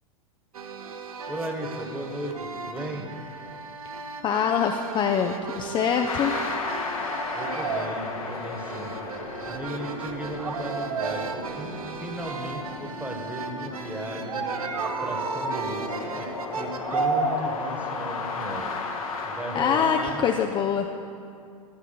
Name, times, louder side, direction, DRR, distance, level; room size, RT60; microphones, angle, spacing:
sound 1, 0.5-20.2, right 4 dB, 85° right, 0.8 m, -34 dB
voice 1, 1.3-3.1 7.3-9.0 9.4-14.5 15.0-20.2, right 1 dB, 10° right, 2 dB, 1.4 m, -36 dB
voice 2, 4.2-6.3 19.5-20.9, left 7 dB, 25° left, 4 dB, 0.5 m, -24 dB
sound 2, 6.0-19.6, left 4 dB, 80° left, 1.4 m, -35 dB
11.5 x 5.8 x 5.9 m, 2.4 s
hypercardioid pair, 100°, 18 cm